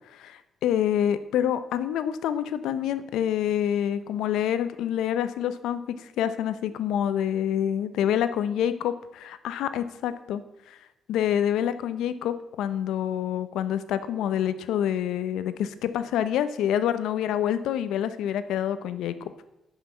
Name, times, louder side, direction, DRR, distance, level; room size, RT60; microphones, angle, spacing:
voice 1, 0.1-10.4 10.7-10.8 11.1-19.3, left 10 dB, 85° left, 12 dB, 0.7 m, -27 dB
10.5 x 5.8 x 5.6 m, 0.91 s
cardioid pair, 90°, 0 cm